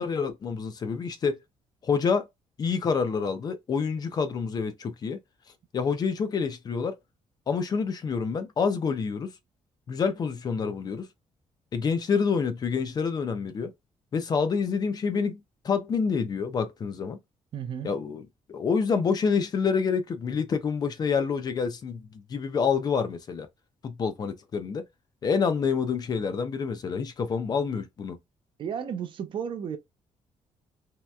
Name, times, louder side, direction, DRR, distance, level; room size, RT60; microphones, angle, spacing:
voice 1, 0.0-1.4 1.8-2.3 2.6-5.2 5.7-7.0 7.5-9.3 9.9-11.1 11.7-13.7 14.1-15.4 15.6-17.2 17.8-18.2 18.5-23.5 23.8-24.8 25.2-28.2, left 5 dB, 35° left, 0.4 m, -27 dB
voice 2, 17.5-17.9 28.6-29.8, right 8 dB, 45° right, 0.4 m, -33 dB
2.9 x 2.8 x 2.2 m
cardioid pair, 170°, 12 cm